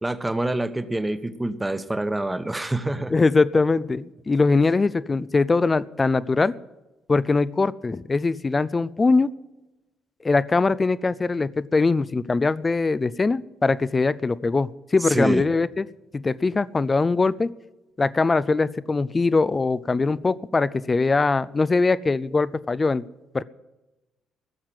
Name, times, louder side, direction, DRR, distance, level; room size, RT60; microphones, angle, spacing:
voice 1, 0.0-3.1 15.1-15.4, right 1 dB, 15° right, 11 dB, 1.2 m, -26 dB
voice 2, 3.1-6.5 7.1-9.3 10.2-15.9 16.1-17.5 18.0-23.0 23.3-23.4, left 3 dB, 25° left, 17 dB, 0.5 m, -22 dB
16.0 x 7.3 x 9.9 m, 1.0 s
figure-of-eight pair, 45°, 0 cm